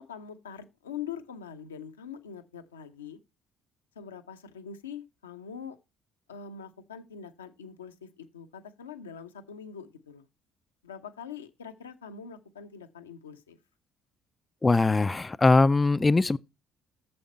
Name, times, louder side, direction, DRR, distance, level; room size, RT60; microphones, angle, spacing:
voice 1, 0.0-3.2 4.0-5.8 6.3-10.3 10.8-13.6, left 7 dB, 85° left, 0.7 m, -43 dB
voice 2, 14.6-16.4, left 3 dB, 20° left, 0.4 m, -21 dB
8.7 x 7.1 x 4.1 m
figure-of-eight pair, 50°, 0 cm